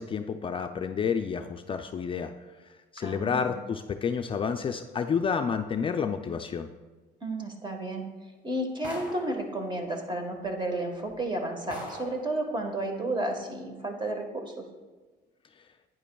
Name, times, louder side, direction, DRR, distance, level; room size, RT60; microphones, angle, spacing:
voice 1, 0.0-2.3 2.9-6.7, left 6 dB, 30° left, 6 dB, 0.4 m, -30 dB
voice 2, 3.0-3.5 7.2-8.0 8.4-14.7, right 1 dB, 25° right, 4 dB, 1.4 m, -32 dB
sound 1, 8.8-9.4 10.4-10.5 11.1-11.2 11.7-12.2, equal, 10° right, 2.6 m, -41 dB
11.0 x 9.1 x 2.3 m, 1.3 s
cardioid pair, 110°, 17 cm